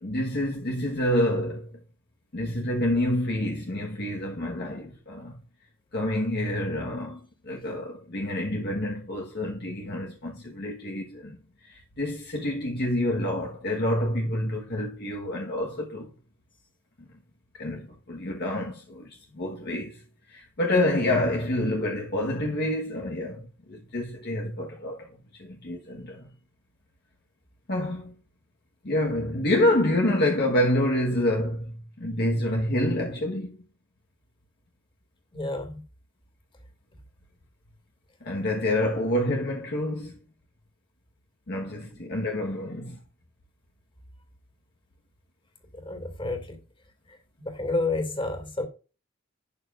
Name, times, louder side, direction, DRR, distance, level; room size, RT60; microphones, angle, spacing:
voice 1, 0.0-1.8 2.3-5.4 5.9-11.4 11.6-16.1 17.5-20.0 20.3-25.1 25.4-26.3 27.7-28.1 28.8-33.6 38.2-40.2 41.5-43.0, left 1 dB, 55° left, 1.4 m, -28 dB
voice 2, 35.3-35.8 45.7-46.6 47.4-48.7, left 2 dB, 25° left, 2.4 m, -30 dB
12.0 x 9.0 x 2.5 m
head